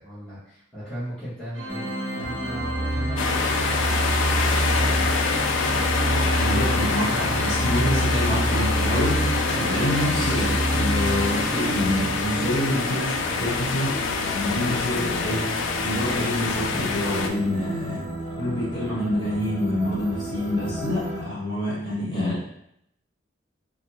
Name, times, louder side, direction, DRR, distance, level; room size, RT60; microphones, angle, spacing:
voice 1, 0.0-5.1, equal, 5° left, -14 dB, 0.9 m, -38 dB
Organ, 1.5-12.3, equal, 75° right, 0.5 m, -33 dB
sound 1, 1.7-21.2, right 1 dB, 25° right, 0.8 m, -29 dB
sound 2, 3.2-17.3, left 5 dB, 85° left, 0.3 m, -26 dB
voice 2, 6.3-15.4 15.8-18.0 18.4-22.5, left 1 dB, 25° left, -9 dB, 1.2 m, -27 dB
2.5 x 2.4 x 3.0 m, 0.75 s
head